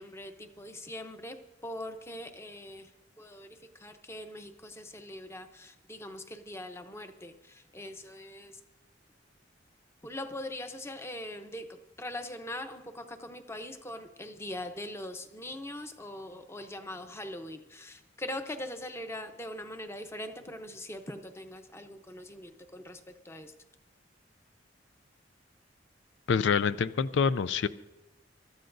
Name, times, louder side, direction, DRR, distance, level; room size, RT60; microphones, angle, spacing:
voice 1, 0.0-1.4 1.6-2.9 3.2-8.6 10.0-23.5, left 1 dB, 15° left, 7 dB, 0.8 m, -42 dB
voice 2, 26.3-27.7, left 6 dB, 75° left, 15 dB, 0.4 m, -26 dB
24.5 x 13.0 x 2.6 m, 1.0 s
head